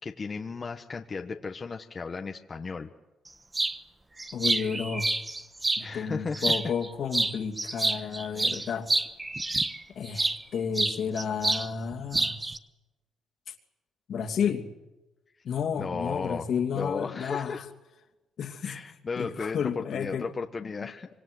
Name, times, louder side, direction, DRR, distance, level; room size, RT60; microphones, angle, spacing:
voice 1, 0.0-2.9 5.8-6.7 8.0-8.7 15.8-17.6 18.6-21.1, left 4 dB, 35° left, 4 dB, 1.4 m, -35 dB
sound 1, 3.5-3.8 4.2-5.8 6.3-6.9 7.1-10.4 10.7-11.7 11.9-12.6, right 2 dB, 20° right, 1.3 m, -28 dB
voice 2, 4.3-5.1 5.8-8.9 9.9-12.4 13.5-13.6 14.1-14.7 15.4-17.6 18.4-18.8 19.2-20.2, left 7 dB, 65° left, 4 dB, 2.7 m, -31 dB
25.5 x 24.5 x 8.0 m, 1.1 s
cardioid pair, 90°, 0 cm